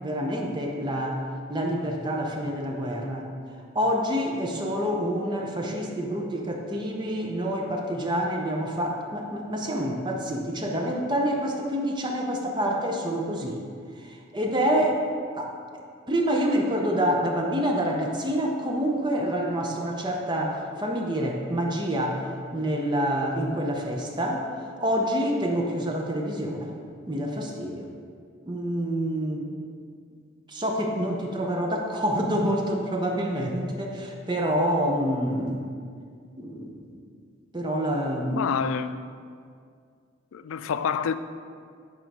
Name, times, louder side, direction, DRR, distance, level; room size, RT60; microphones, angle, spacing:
voice 1, 0.0-1.2 1.5-3.3 3.7-13.6 14.0-15.0 15.3-15.8 16.1-26.7 27.1-27.9 28.5-29.6 30.5-35.6 36.4-36.8 37.5-38.6, equal, 20° right, 0.6 m, -27 dB
voice 2, 38.3-39.1 40.3-41.2, left 7 dB, 85° left, 0.3 m, -28 dB
9.1 x 3.7 x 5.4 m
head